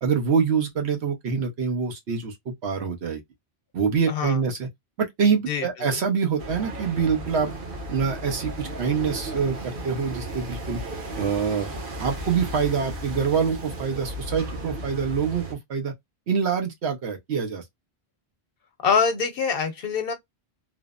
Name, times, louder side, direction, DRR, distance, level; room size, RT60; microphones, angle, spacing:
voice 1, 0.0-3.2 3.7-4.7 5.0-7.5 7.9-10.8 11.2-11.7 12.0-15.9 16.3-17.6, right 6 dB, 80° right, 1.2 m, -25 dB
voice 2, 4.1-4.4 5.5-5.7 18.8-20.1, left 6 dB, 65° left, 0.9 m, -24 dB
sound 1, 6.4-15.5, right 1 dB, 55° right, 1.0 m, -35 dB
3.1 x 2.0 x 2.3 m
omnidirectional pair, 1.1 m